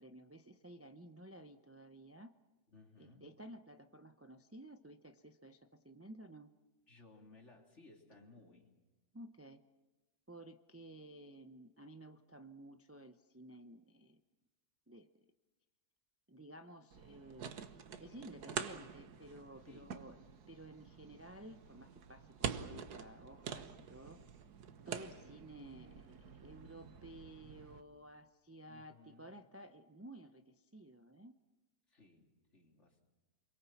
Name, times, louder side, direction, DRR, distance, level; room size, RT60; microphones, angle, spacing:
voice 1, 0.0-2.3 3.0-6.5 9.1-9.6 10.3-14.2 14.9-15.1 16.3-17.5 18.0-24.2 24.9-31.4, right 1 dB, 20° right, 7 dB, 0.4 m, -54 dB
voice 2, 2.7-3.2 6.9-8.7 19.7-20.0 28.7-29.4 31.9-33.0, left 3 dB, 45° left, 2 dB, 3.2 m, -61 dB
sound 1, 16.9-27.8, right 7 dB, 70° right, 1.7 m, -47 dB
28.5 x 22.5 x 7.2 m, 1.1 s
omnidirectional pair, 1.7 m